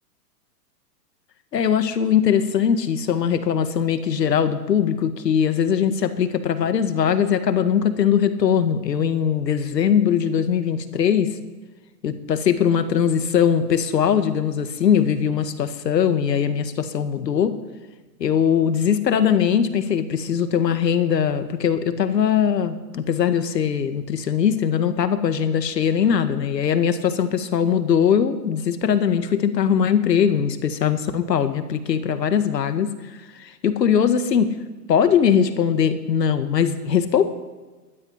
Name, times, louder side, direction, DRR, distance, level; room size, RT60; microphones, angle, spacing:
voice 1, 1.5-11.4 12.0-17.6 18.2-33.0 33.4-34.6 34.9-37.3, left 8 dB, 85° left, 9 dB, 1.8 m, -21 dB
20.5 x 12.0 x 5.7 m, 1.3 s
hypercardioid pair, 150°, 48 cm